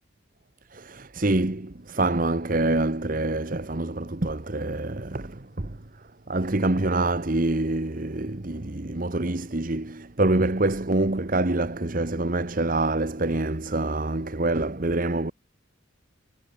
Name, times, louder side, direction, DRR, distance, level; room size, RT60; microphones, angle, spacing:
voice 1, 0.7-5.8 6.3-15.3, right 2 dB, 45° right, 1.1 m, -26 dB
head